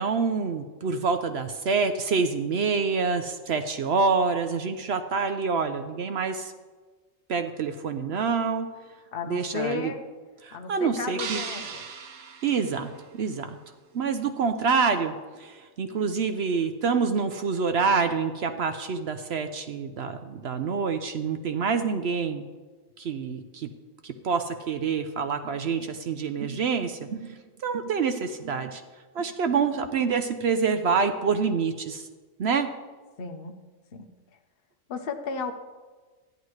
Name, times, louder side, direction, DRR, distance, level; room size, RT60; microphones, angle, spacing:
voice 1, 0.0-6.5 7.3-8.8 9.3-9.9 10.4-11.4 12.4-13.6 13.9-15.1 15.4-22.4 23.0-23.7 24.0-28.8 29.1-32.1 32.4-32.7, right 5 dB, 60° right, 8 dB, 0.8 m, -27 dB
voice 2, 9.1-10.0 10.5-11.8 33.2-33.5 33.9-34.1 34.9-35.5, left 5 dB, 50° left, 4 dB, 0.9 m, -34 dB
sound 1, 11.2-13.5, right 6 dB, 85° right, 1.3 m, -38 dB
13.5 x 10.5 x 3.2 m, 1.4 s
omnidirectional pair, 1.4 m